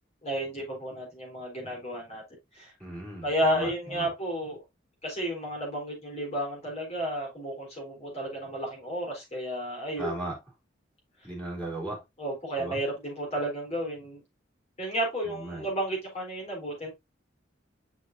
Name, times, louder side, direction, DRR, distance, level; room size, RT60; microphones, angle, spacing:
voice 1, 0.2-2.2 2.5-2.7 3.2-4.6 5.0-10.2 12.2-14.2 14.8-16.9, right 1 dB, 35° left, 4.1 m, -32 dB
voice 2, 2.8-4.1 10.0-10.4 11.2-12.0 12.6-12.8 15.2-15.7, right 2 dB, 5° left, 3.8 m, -37 dB
6.9 x 6.3 x 2.7 m
head